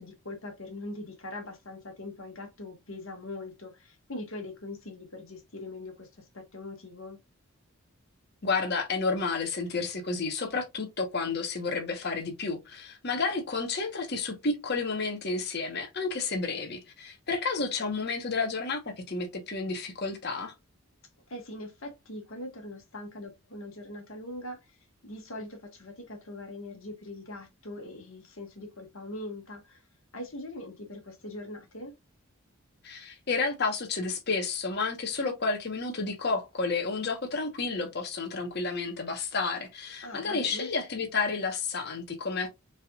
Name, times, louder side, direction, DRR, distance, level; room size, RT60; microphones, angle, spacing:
voice 1, 0.0-6.1 6.3-7.2 21.3-24.8 25.0-29.8 30.1-31.9 40.0-40.7, left 1 dB, 65° left, 1.5 m, -41 dB
voice 2, 8.4-20.5 32.8-42.5, left 4 dB, 45° left, 1.0 m, -31 dB
5.4 x 3.5 x 2.3 m
head